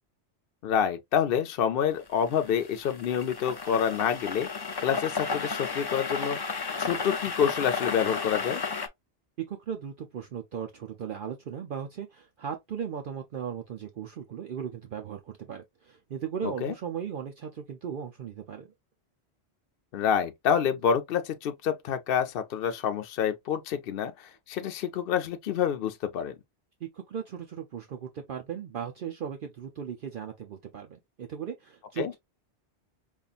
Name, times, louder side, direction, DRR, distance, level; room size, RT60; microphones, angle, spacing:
voice 1, 0.6-6.4 6.8-8.6 16.4-16.7 19.9-26.3 32.0-32.1, left 8 dB, 60° left, 0.7 m, -28 dB
sound 1, 2.1-8.9, left 5 dB, 40° left, 0.3 m, -33 dB
voice 2, 9.5-18.7 26.8-32.2, right 8 dB, 55° right, 0.7 m, -37 dB
5.4 x 2.4 x 2.4 m
omnidirectional pair, 1.2 m